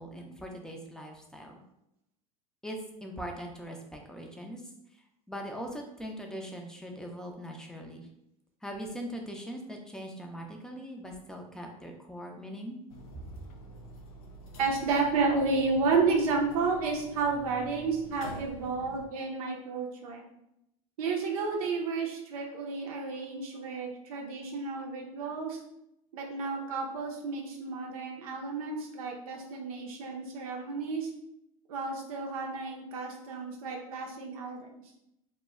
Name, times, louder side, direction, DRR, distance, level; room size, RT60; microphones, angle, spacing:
voice 1, 0.0-1.6 2.6-4.6 5.3-8.0 8.6-12.8 13.1-13.4, equal, 5° left, 2 dB, 0.5 m, -41 dB
sound 1, 12.9-19.1, left 2 dB, 90° left, 0.4 m, -47 dB
voice 2, 14.6-20.2 21.0-25.6 26.1-31.1 31.7-34.7, right 4 dB, 90° right, 0 dB, 0.5 m, -31 dB
2.2 x 2.1 x 3.5 m, 0.82 s
supercardioid pair, 95°, 18 cm